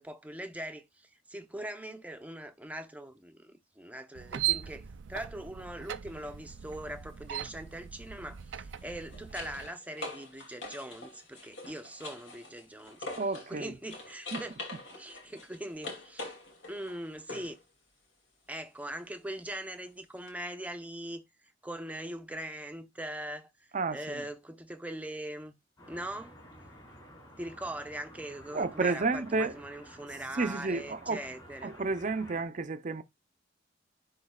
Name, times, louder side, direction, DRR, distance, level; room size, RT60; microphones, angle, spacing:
voice 1, 0.0-14.6 14.9-16.3 16.7-17.5 18.5-21.2 21.6-25.6 25.9-26.4 27.4-31.7, right 1 dB, 10° right, 0.8 m, -41 dB
sound 1, 4.1-9.7, right 12 dB, 90° right, 0.5 m, -38 dB
sound 2, 6.1-6.3 8.6-13.6 13.9-17.6 20.3-20.4, left 2 dB, 80° left, 2.5 m, -44 dB
voice 2, 13.2-13.7 14.3-14.4 23.7-24.2 28.5-29.5 30.4-31.2 31.6-33.0, right 3 dB, 45° right, 0.6 m, -31 dB
sound 3, 25.8-32.5, equal, 25° left, 4.3 m, -52 dB
10.5 x 3.9 x 2.3 m
head